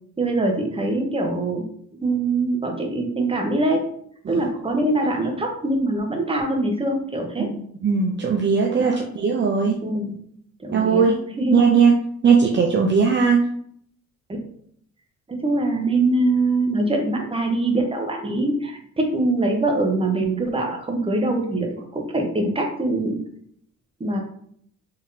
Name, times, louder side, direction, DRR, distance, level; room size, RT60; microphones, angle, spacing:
voice 1, 0.2-1.6 2.0-3.9 4.3-7.5 8.8-9.1 9.8-10.1 10.6-11.6 15.3-23.2 24.0-24.2, right 2 dB, 20° right, 2 dB, 0.9 m, -23 dB
voice 2, 7.4-9.8 10.7-11.2 11.5-11.9 12.2-13.4, right 5 dB, 40° right, 0 dB, 0.6 m, -19 dB
3.7 x 3.5 x 2.8 m, 0.65 s
cardioid pair, 90°, 30 cm